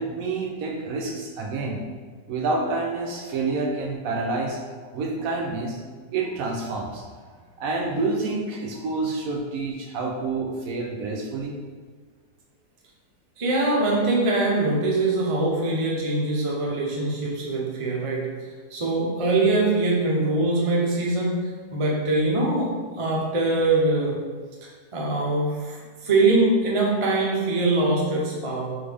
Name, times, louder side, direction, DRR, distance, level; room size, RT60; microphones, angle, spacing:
voice 1, 0.0-1.8 2.3-4.6 4.9-5.8 6.1-7.1 7.6-11.5, right 3 dB, 70° right, 0 dB, 0.9 m, -28 dB
voice 2, 13.4-18.3 18.7-21.4 21.7-24.2 24.9-28.7, right 2 dB, 45° right, -3 dB, 0.4 m, -23 dB
4.0 x 3.3 x 3.4 m, 1.5 s
omnidirectional pair, 1.7 m